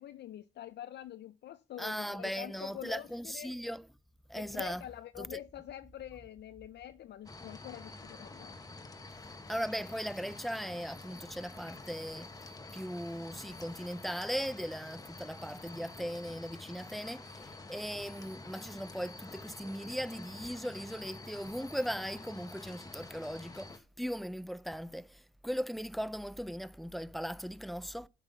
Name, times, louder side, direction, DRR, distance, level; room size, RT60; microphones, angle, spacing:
voice 1, 0.0-3.5 4.3-8.5, left 12 dB, 60° left, 0.5 m, -46 dB
voice 2, 1.8-3.8 4.3-4.8 5.2-5.3 9.5-12.3 12.7-28.1, equal, ahead, 0.4 m, -38 dB
sound 1, 7.3-23.8, left 2 dB, 20° left, 1.0 m, -48 dB
8.1 x 5.4 x 7.0 m
cardioid pair, 90°, 20 cm